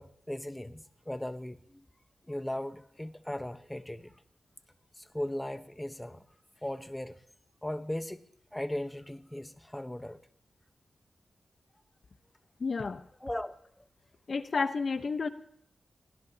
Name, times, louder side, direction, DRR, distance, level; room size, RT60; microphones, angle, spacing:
voice 1, 0.0-1.8 2.3-4.1 5.0-6.2 6.6-7.2 7.6-8.2 8.5-10.2 13.2-13.5, left 1 dB, 10° left, 9 dB, 1.1 m, -37 dB
voice 2, 12.6-13.0 14.3-15.3, left 4 dB, 60° left, 9 dB, 1.0 m, -31 dB
23.5 x 17.5 x 2.9 m, 0.70 s
cardioid pair, 75°, 0 cm